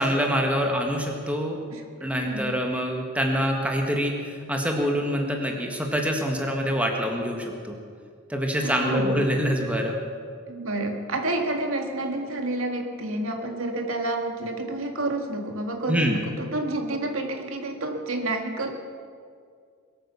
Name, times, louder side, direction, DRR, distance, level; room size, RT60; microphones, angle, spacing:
voice 1, 0.0-1.6 2.0-7.8 8.3-10.0 15.9-16.2, equal, 5° right, 1 dB, 1.6 m, -25 dB
voice 2, 8.6-9.2 10.5-18.7, right 2 dB, 75° right, 3 dB, 2.0 m, -29 dB
22.0 x 9.3 x 7.0 m, 2.2 s
head